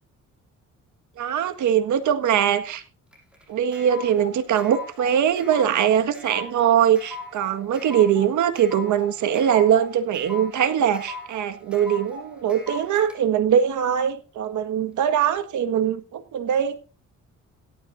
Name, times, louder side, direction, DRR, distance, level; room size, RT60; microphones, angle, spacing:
voice 1, 1.2-2.8 3.5-16.8, right 9 dB, 75° right, 8 dB, 1.8 m, -22 dB
sound 1, 3.1-13.2, left 2 dB, 5° right, 6.6 m, -39 dB
17.5 x 12.0 x 2.7 m, 0.33 s
cardioid pair, 90°, 30 cm